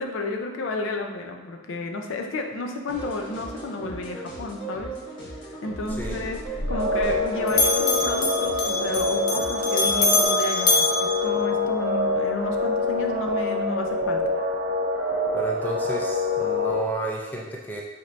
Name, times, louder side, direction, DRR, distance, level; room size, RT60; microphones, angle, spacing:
voice 1, 0.0-5.0 5.4-10.7 11.0-14.2, left 2 dB, 80° left, 3 dB, 0.4 m, -32 dB
sound 1, 2.9-10.3, right 3 dB, 65° left, 1.1 m, -38 dB
Bell, 5.8-7.2 7.5-12.0, left 3 dB, 45° left, 0.7 m, -25 dB
sound 2, 6.7-16.8, left 2 dB, 65° right, 0.6 m, -25 dB
voice 2, 15.3-17.8, right 2 dB, 10° left, -2 dB, 0.4 m, -31 dB
4.3 x 3.2 x 2.5 m, 1.3 s
head